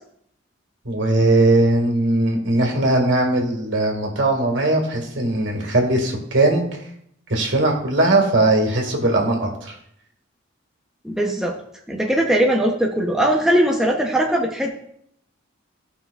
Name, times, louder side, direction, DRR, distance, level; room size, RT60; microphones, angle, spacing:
voice 1, 0.9-6.7 7.3-9.7, right 2 dB, 70° right, 1 dB, 1.9 m, -19 dB
voice 2, 11.0-11.6 11.9-14.7, right 1 dB, 5° right, -1 dB, 0.7 m, -20 dB
15.5 x 5.6 x 2.4 m, 0.70 s
head